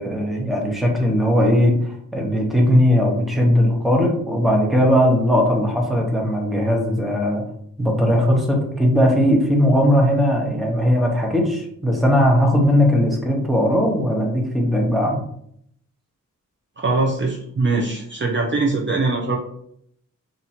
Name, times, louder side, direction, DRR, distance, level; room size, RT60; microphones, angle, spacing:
voice 1, 0.0-7.4 7.8-15.2, equal, ahead, 0 dB, 0.8 m, -18 dB
voice 2, 16.8-19.4, right 3 dB, 35° right, -2 dB, 0.6 m, -22 dB
2.9 x 2.6 x 4.2 m, 0.68 s
wide cardioid pair, 100°, 34 cm